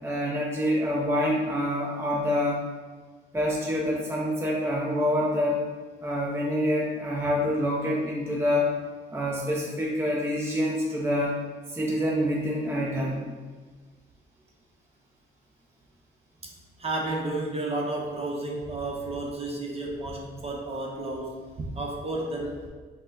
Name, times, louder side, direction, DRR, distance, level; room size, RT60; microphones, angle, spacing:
voice 1, 0.0-2.6 3.3-5.6 6.0-8.7 9.1-11.4 11.7-13.2, left 1 dB, 10° right, -5 dB, 0.8 m, -26 dB
voice 2, 16.8-22.6, right 2 dB, 30° right, -2 dB, 1.0 m, -32 dB
5.5 x 2.4 x 3.9 m, 1.4 s
cardioid pair, 90°, 20 cm